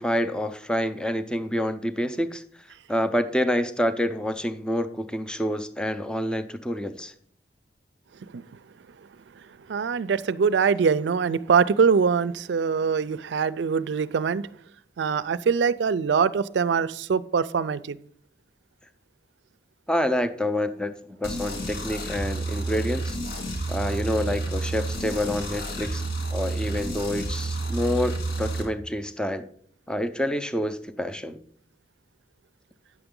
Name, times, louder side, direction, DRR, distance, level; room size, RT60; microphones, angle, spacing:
voice 1, 0.0-2.4 2.9-7.1 19.9-23.2 23.7-26.0 26.3-29.4 29.9-31.4, equal, 5° left, 9 dB, 0.5 m, -27 dB
voice 2, 9.7-14.4 15.0-18.0, right 6 dB, 80° right, 17 dB, 0.4 m, -23 dB
sound 1, 21.2-28.6, right 2 dB, 60° left, 2.6 m, -30 dB
9.5 x 6.9 x 3.7 m, 0.63 s
head